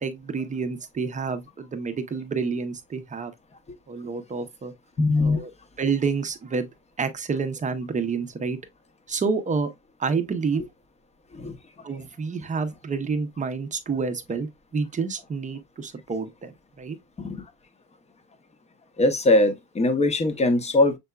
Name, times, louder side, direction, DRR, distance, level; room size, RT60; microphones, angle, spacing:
voice 1, 0.0-3.3 3.9-4.7 5.2-5.5 5.8-6.7 7.0-8.6 9.1-9.7 10.0-10.6 11.8-17.0, right 5 dB, 15° right, 0.7 m, -28 dB
voice 2, 5.0-5.4 11.3-11.6 17.2-17.4 19.0-21.0, left 2 dB, 15° left, 0.8 m, -21 dB
6.7 x 3.5 x 2.3 m
supercardioid pair, 130°, 44 cm